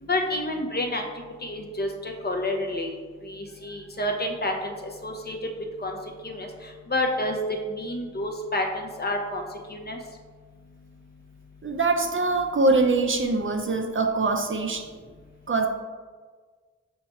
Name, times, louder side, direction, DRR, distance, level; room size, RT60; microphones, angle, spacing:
voice 1, 0.0-3.0 3.2-4.7 5.0-5.4 5.8-5.9 6.2-6.5 6.9-7.4 7.7-9.4 9.7-10.0, left 1 dB, 35° left, 2 dB, 0.7 m, -29 dB
voice 2, 11.6-14.8 15.5-15.7, right 3 dB, 45° right, 4 dB, 0.5 m, -23 dB
5.5 x 2.2 x 4.1 m, 1.5 s
cardioid pair, 45°, 29 cm